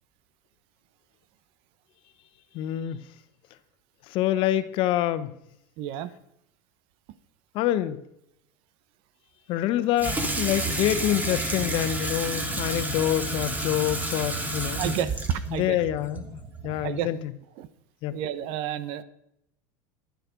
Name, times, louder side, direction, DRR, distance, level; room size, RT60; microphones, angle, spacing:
voice 1, 2.5-3.0 4.1-5.3 7.5-8.0 9.5-14.8 15.5-16.3 16.6-17.3 18.0-18.2, left 13 dB, 60° left, 13 dB, 1.0 m, -26 dB
voice 2, 5.8-6.1 14.7-15.8 16.8-17.1 17.6-17.7 18.1-19.0, right 10 dB, 60° right, 15 dB, 1.1 m, -30 dB
Water tap faucet / Sink (filling or washing), 10.0-17.0, right 2 dB, 15° right, 2.3 m, -30 dB
11.0 x 10.5 x 5.3 m, 0.77 s
supercardioid pair, 105°, 10 cm